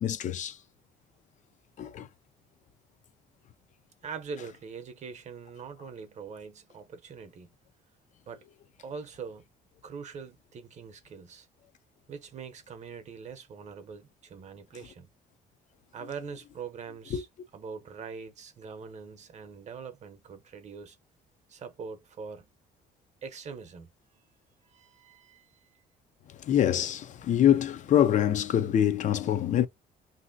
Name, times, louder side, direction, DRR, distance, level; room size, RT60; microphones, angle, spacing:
voice 1, 0.0-0.6 1.8-2.1 17.1-17.2 26.4-29.7, left 10 dB, 45° left, 0.5 m, -25 dB
voice 2, 4.0-7.5 8.3-8.5 8.8-9.5 9.8-11.5 12.1-15.1 15.9-17.3 17.5-21.0 21.5-22.5 23.2-23.9 24.7-25.5 29.3-29.4, right 5 dB, 45° right, 0.7 m, -43 dB
3.0 x 2.6 x 2.6 m
cardioid pair, 110°, 17 cm